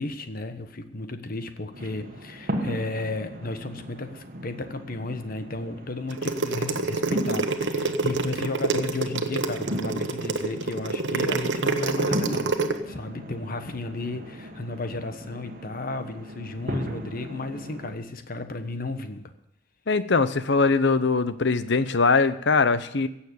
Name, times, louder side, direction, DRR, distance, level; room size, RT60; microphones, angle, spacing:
voice 1, 0.0-12.5 12.8-19.2, left 2 dB, 50° left, 8 dB, 1.2 m, -33 dB
sound 1, 1.7-17.9, equal, 50° right, 1.5 m, -37 dB
sound 2, 6.1-12.7, right 3 dB, 70° right, 1.1 m, -26 dB
voice 2, 19.9-23.1, left 4 dB, 65° left, 13 dB, 0.8 m, -21 dB
16.0 x 7.2 x 8.6 m, 0.84 s
head